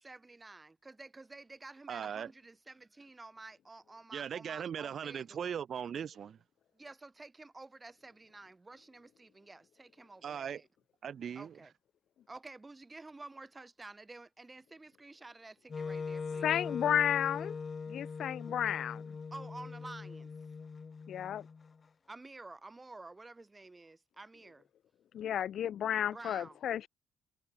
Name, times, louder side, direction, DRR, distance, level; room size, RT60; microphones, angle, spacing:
voice 1, 0.0-5.5 6.7-10.7 11.3-11.7 12.3-16.5 19.3-20.3 22.1-24.7 26.1-26.6, right 3 dB, 20° right, 2.4 m, -51 dB
voice 2, 1.9-2.3 4.1-6.4 10.2-10.6 11.0-11.6, right 8 dB, 55° right, 1.1 m, -39 dB
Wind instrument woodwind instrument, 15.7-21.7, left 5 dB, 35° left, 3.1 m, -41 dB
voice 3, 16.4-17.5 17.9-19.0 21.1-21.4 25.1-26.9, left 10 dB, 65° left, 0.5 m, -32 dB
cardioid pair, 90°, 0 cm